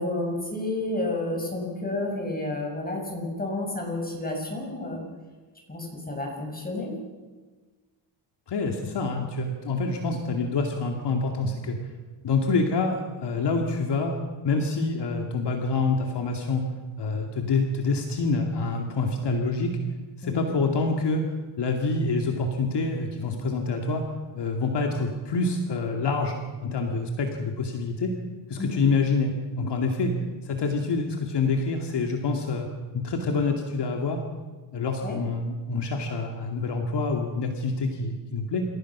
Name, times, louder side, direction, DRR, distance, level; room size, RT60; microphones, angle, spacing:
voice 1, 0.0-5.0 5.7-6.9 20.2-20.3 28.6-28.7 35.0-35.2, left 2 dB, 20° left, 0 dB, 7.0 m, -30 dB
voice 2, 8.5-11.8 12.2-14.2 14.4-16.6 17.0-19.7 20.2-21.2 21.6-24.0 24.4-28.1 28.5-30.1 30.4-32.7 32.9-34.2 34.7-38.7, left 3 dB, 55° left, 2 dB, 2.4 m, -26 dB
28.0 x 16.0 x 6.1 m, 1.3 s
cardioid pair, 110°, 49 cm